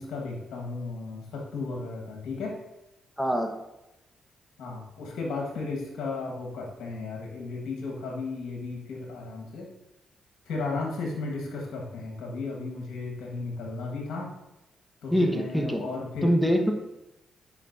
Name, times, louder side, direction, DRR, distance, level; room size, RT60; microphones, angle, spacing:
voice 1, 0.0-2.6 4.6-9.7 10.5-14.3 15.0-16.3, left 3 dB, 75° left, -1 dB, 1.6 m, -34 dB
voice 2, 3.2-3.5 15.1-15.8 16.2-16.7, equal, ahead, 4 dB, 1.2 m, -24 dB
10.0 x 5.2 x 2.7 m, 0.93 s
supercardioid pair, 55°, 0 cm